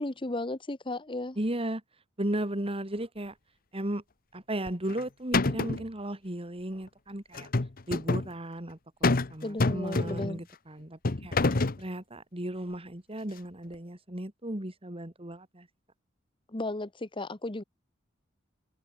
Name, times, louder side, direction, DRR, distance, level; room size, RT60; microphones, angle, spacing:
voice 1, 0.0-1.4 9.4-10.5 16.5-17.6, left 2 dB, 25° left, 1.3 m, -34 dB
voice 2, 1.4-1.8 2.2-3.3 3.7-4.0 4.3-7.5 7.9-11.3 11.8-15.7, right 1 dB, 30° right, 2.7 m, -35 dB
sound 1, 4.7-5.0 5.3-5.9 7.3-8.3 9.0-9.3 9.6-10.4 11.0-11.8, left 3 dB, 50° left, 0.9 m, -27 dB
head